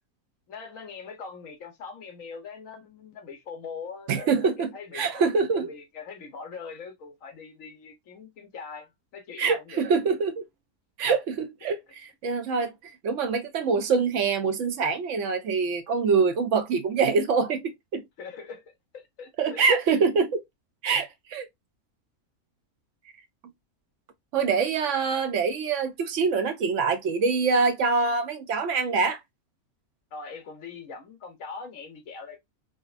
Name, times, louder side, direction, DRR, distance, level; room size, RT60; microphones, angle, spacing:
voice 1, 0.5-9.8 11.6-11.7 18.2-19.6 30.1-32.4, left 5 dB, 65° left, 1.3 m, -42 dB
voice 2, 4.1-5.7 9.4-10.4 11.0-18.0 19.4-20.4 20.8-21.5 24.3-29.2, right 5 dB, 65° right, 0.8 m, -25 dB
5.1 x 2.1 x 2.5 m
omnidirectional pair, 1.5 m